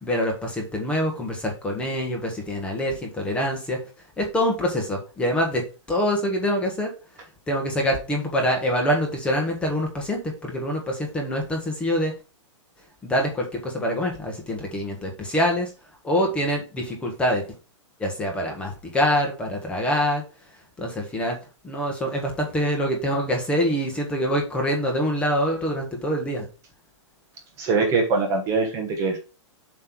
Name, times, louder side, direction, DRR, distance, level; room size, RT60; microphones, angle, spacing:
voice 1, 0.0-3.8 4.2-5.6 5.9-6.9 7.5-12.1 13.1-15.7 16.0-17.4 18.0-20.2 20.8-21.4 21.6-26.5, equal, 5° left, 1 dB, 1.2 m, -25 dB
voice 2, 27.6-29.2, right 4 dB, 20° right, 3 dB, 1.2 m, -23 dB
7.5 x 3.3 x 5.8 m, 0.32 s
hypercardioid pair, 170°, 16 cm